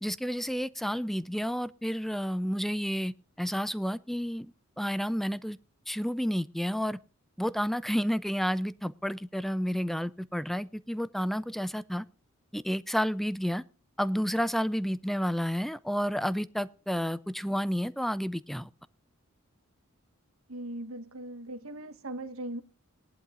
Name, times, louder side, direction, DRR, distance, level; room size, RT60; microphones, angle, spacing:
voice 1, 0.0-4.5 4.8-5.6 5.9-7.0 7.4-12.0 12.5-13.6 14.0-18.7, equal, ahead, 0.5 m, -30 dB
voice 2, 20.5-22.6, right 1 dB, 70° right, 1.5 m, -39 dB
19.5 x 11.5 x 2.5 m
head